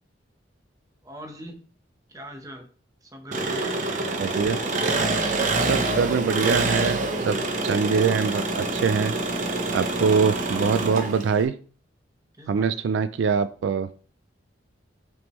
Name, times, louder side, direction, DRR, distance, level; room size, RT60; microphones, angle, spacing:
voice 1, 1.0-1.6 2.1-2.7 3.0-3.8 12.4-12.9, equal, 20° right, 3 dB, 1.0 m, -41 dB
Engine, 3.3-11.4, right 2 dB, 45° right, 0.9 m, -26 dB
voice 2, 4.2-4.6 5.6-7.4 7.6-9.1 9.7-11.5 12.5-13.9, right 6 dB, 75° right, 13 dB, 0.3 m, -23 dB
6.1 x 5.2 x 3.1 m, 0.42 s
head